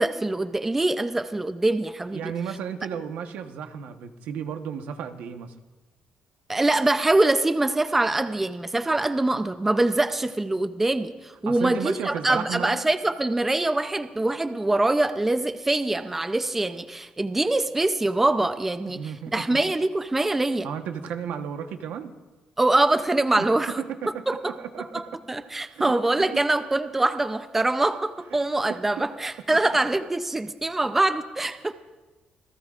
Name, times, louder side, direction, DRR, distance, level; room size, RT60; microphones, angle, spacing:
voice 1, 0.0-2.2 6.5-19.0 19.3-20.7 22.6-23.8 24.3-31.7, right 2 dB, 10° right, 10 dB, 0.5 m, -24 dB
voice 2, 2.1-5.6 11.5-12.8 18.9-19.6 20.6-22.1 23.4-25.0 25.8-25.9 28.7-29.0, right 8 dB, 90° right, 6 dB, 1.1 m, -34 dB
27.0 x 18.0 x 2.5 m, 1.2 s
cardioid pair, 170°, 3 cm